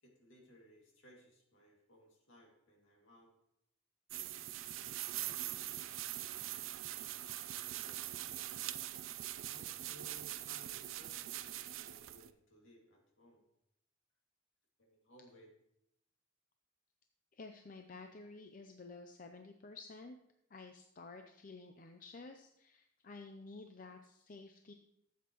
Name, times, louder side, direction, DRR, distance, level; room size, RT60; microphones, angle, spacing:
voice 1, 0.0-3.3 4.8-6.6 7.3-8.5 9.4-13.4 14.8-15.5, equal, 70° left, 0 dB, 2.4 m, -62 dB
sound 1, 4.1-12.3, right 13 dB, 75° right, 0.5 m, -43 dB
voice 2, 17.3-20.2 20.5-24.7, left 3 dB, 40° left, 5 dB, 0.6 m, -52 dB
12.5 x 8.1 x 3.0 m, 0.76 s
head